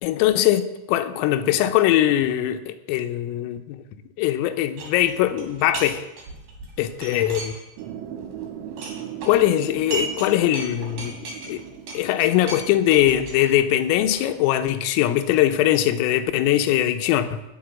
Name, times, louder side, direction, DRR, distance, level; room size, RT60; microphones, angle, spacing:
voice 1, 0.0-3.8 4.2-6.0 6.8-7.6 9.3-11.2 11.5-11.6 12.0-17.4, left 12 dB, 85° left, 9 dB, 3.6 m, -21 dB
sound 1, 4.8-5.9 6.2-7.9 8.2-10.3 10.5-14.3, right 3 dB, 50° right, 4.4 m, -36 dB
sound 2, 7.8-12.8, right 9 dB, 75° right, 3.3 m, -38 dB
20.0 x 8.2 x 7.4 m, 0.99 s
omnidirectional pair, 6.0 m